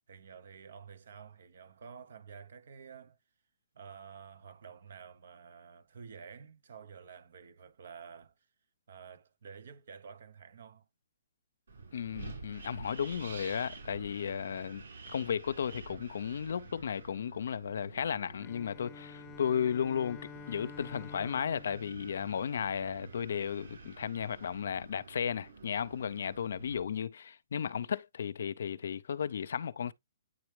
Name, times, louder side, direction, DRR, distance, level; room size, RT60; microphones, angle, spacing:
voice 1, 0.1-3.2 3.7-8.5 8.9-10.9, right 6 dB, 65° right, 0.7 m, -50 dB
Wind, 11.7-26.8, right 4 dB, 85° right, 3.7 m, -50 dB
voice 2, 11.9-14.8 15.1-29.9, left 8 dB, 70° left, 0.5 m, -34 dB
Bowed string instrument, 18.4-23.1, left 6 dB, 15° left, 0.4 m, -50 dB
9.3 x 3.5 x 3.2 m
hypercardioid pair, 155°, 0 cm